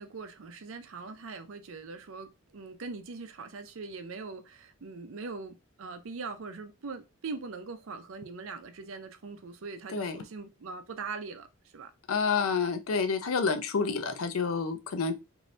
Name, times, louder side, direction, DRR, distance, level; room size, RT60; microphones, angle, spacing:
voice 1, 0.0-11.5 11.7-11.9, right 4 dB, 70° right, 0.5 m, -41 dB
voice 2, 9.9-10.2 12.1-15.1, left 5 dB, 90° left, 0.5 m, -29 dB
2.6 x 2.6 x 3.1 m
head